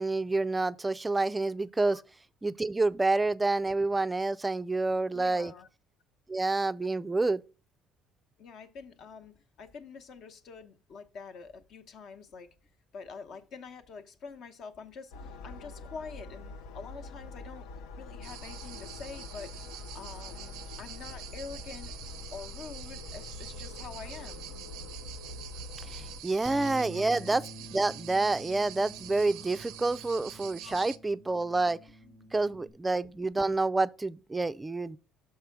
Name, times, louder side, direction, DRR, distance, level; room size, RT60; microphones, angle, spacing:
voice 1, 0.0-2.0 2.4-5.5 6.3-7.4 25.9-27.4 27.7-31.8 32.3-35.0, right 3 dB, 15° right, 0.3 m, -28 dB
voice 2, 5.1-5.7 8.4-12.5 12.9-17.7 18.0-19.5 19.9-21.9 22.3-24.5 26.9-27.3 30.6-30.7 32.0-32.5, left 5 dB, 60° left, 1.0 m, -46 dB
sound 1, 15.1-26.2, left 3 dB, 85° left, 0.5 m, -44 dB
sound 2, 18.2-31.0, right 12 dB, 90° right, 0.5 m, -46 dB
Bass guitar, 26.5-32.7, left 2 dB, 15° left, 1.0 m, -48 dB
6.6 x 4.8 x 4.6 m
cardioid pair, 115°, 0 cm